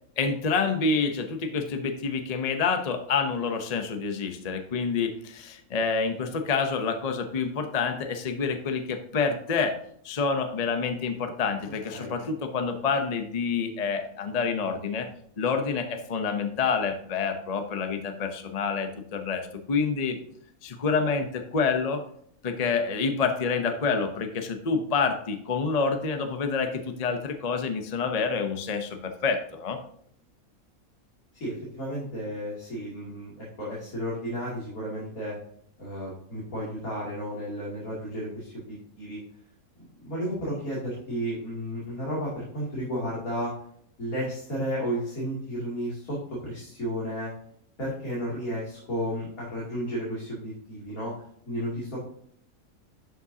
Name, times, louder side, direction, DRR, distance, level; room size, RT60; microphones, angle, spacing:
voice 1, 0.2-9.8 10.0-15.1 15.4-20.2 20.6-22.0 22.4-29.8, left 5 dB, 35° left, 6 dB, 0.7 m, -28 dB
voice 2, 31.4-35.4 35.8-39.2 40.0-43.5 44.0-47.3 47.8-51.1 51.5-52.0, equal, 75° left, -7 dB, 3.1 m, -33 dB
12.0 x 5.3 x 2.8 m, 0.65 s
omnidirectional pair, 1.5 m